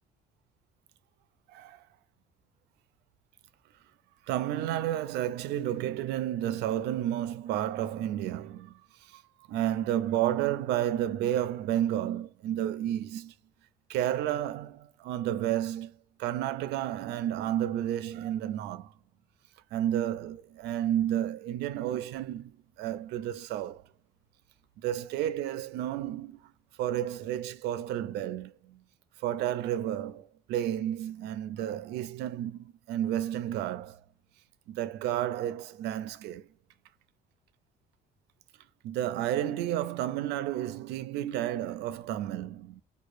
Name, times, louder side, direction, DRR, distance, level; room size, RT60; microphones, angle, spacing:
voice 1, 4.3-8.7 9.1-9.2 9.5-13.3 13.9-15.9 16.2-18.9 19.7-22.5 22.8-23.8 24.8-26.4 26.8-28.8 29.2-34.0 34.7-36.4 38.8-42.8, right 12 dB, 80° right, 0.4 m, -31 dB
4.7 x 2.2 x 2.5 m
cardioid pair, 110°, 17 cm